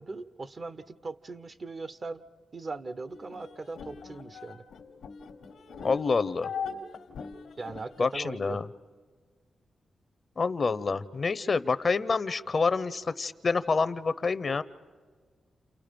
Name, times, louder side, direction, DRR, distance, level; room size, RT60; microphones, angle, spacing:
voice 1, 0.0-2.2 2.5-4.6 7.6-8.6 14.5-14.6, right 3 dB, 45° right, 13 dB, 0.8 m, -39 dB
sound 1, 3.1-8.2, left 5 dB, 85° left, 1.3 m, -41 dB
voice 2, 5.8-6.5 8.0-8.7 10.4-14.6, left 4 dB, 45° left, 15 dB, 0.7 m, -27 dB
29.5 x 28.5 x 5.2 m, 1.5 s
cardioid pair, 70°, 0 cm